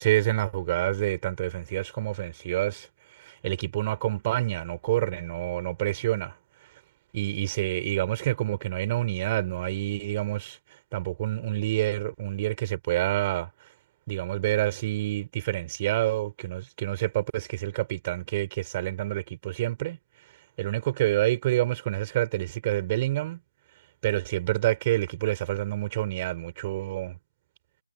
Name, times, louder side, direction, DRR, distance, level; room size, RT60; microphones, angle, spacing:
voice 1, 0.0-2.9 3.1-6.4 7.1-10.6 10.9-13.5 14.1-20.0 20.6-23.4 24.0-27.2, right 16 dB, 20° right, 5.6 m, -28 dB
figure-of-eight pair, 170°, 0 cm